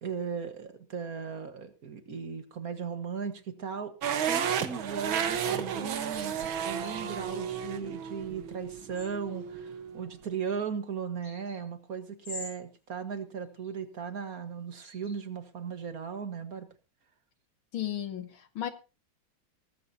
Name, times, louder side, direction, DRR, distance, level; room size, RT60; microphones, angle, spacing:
voice 1, 0.0-16.7, right 6 dB, 45° right, 1.8 m, -37 dB
sound 1, 4.0-10.1, right 8 dB, 75° right, 2.0 m, -33 dB
sound 2, 6.1-7.1 8.7-9.3 11.2-11.6 12.2-12.6 13.6-13.7 14.7-15.2 15.8-15.9, left 2 dB, 60° left, 5.7 m, -45 dB
voice 2, 17.7-18.7, left 11 dB, 75° left, 2.5 m, -34 dB
18.5 x 15.0 x 2.8 m
omnidirectional pair, 2.3 m